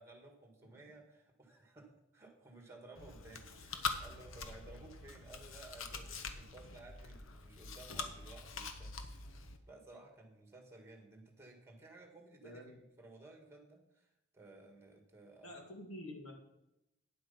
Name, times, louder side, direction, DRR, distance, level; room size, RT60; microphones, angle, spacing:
voice 1, 0.0-9.3 9.7-14.1 14.3-15.5, right 2 dB, 10° right, 2 dB, 1.9 m, -57 dB
Chewing mastication, 2.9-9.6, left 4 dB, 65° left, 1.0 m, -44 dB
voice 2, 12.4-12.7 15.4-16.3, left 1 dB, 80° left, 1 dB, 2.3 m, -48 dB
9.6 x 7.8 x 5.6 m, 0.89 s
head